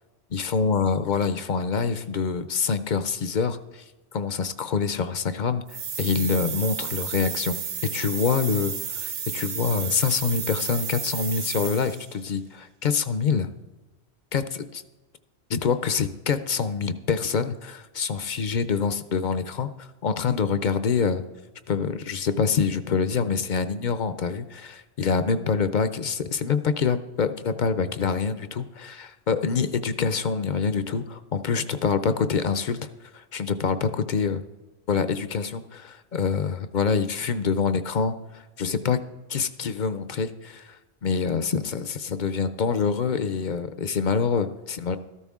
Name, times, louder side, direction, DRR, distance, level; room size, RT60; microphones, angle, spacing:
voice 1, 0.3-3.8 4.1-5.6 6.0-7.5 7.9-13.5 14.3-14.8 15.5-21.2 21.7-32.8 33.1-34.4 34.9-39.0 39.3-40.8 41.0-45.0, left 5 dB, 55° left, 11 dB, 0.6 m, -26 dB
sound 1, 5.7-12.1, right 7 dB, 50° right, 0.6 m, -32 dB
13.5 x 12.5 x 3.6 m, 1.2 s
omnidirectional pair, 1.1 m